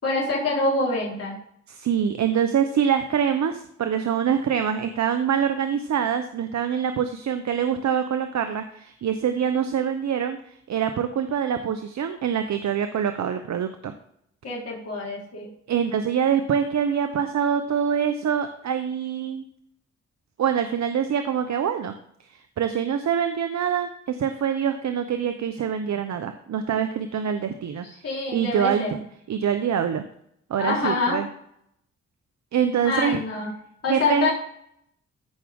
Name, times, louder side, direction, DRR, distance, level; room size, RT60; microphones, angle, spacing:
voice 1, 0.0-1.4 14.4-15.5 28.0-29.0 30.6-31.2 32.8-33.5 33.8-34.3, left 3 dB, 55° left, -5 dB, 4.2 m, -25 dB
voice 2, 1.7-13.9 15.7-19.4 20.4-21.9 22.3-27.8 28.3-29.0 29.3-30.1 30.5-31.3 32.5-33.2 33.9-34.3, right 8 dB, 65° right, 8 dB, 0.9 m, -25 dB
14.5 x 5.9 x 3.7 m, 0.70 s
supercardioid pair, 45°, 30 cm